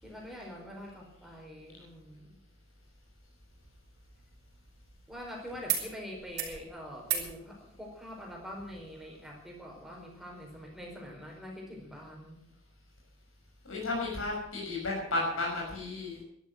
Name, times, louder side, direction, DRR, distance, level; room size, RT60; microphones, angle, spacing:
voice 1, 0.0-2.4 5.1-12.4 14.1-14.3, equal, ahead, -1 dB, 4.7 m, -45 dB
sound 1, 3.5-5.3 5.7-5.9 6.2-6.6 7.0-7.3 8.7-8.8, right 9 dB, 55° right, 5.2 m, -36 dB
voice 2, 13.6-16.2, left 2 dB, 85° left, -1 dB, 5.8 m, -33 dB
12.5 x 12.0 x 7.8 m, 0.72 s
head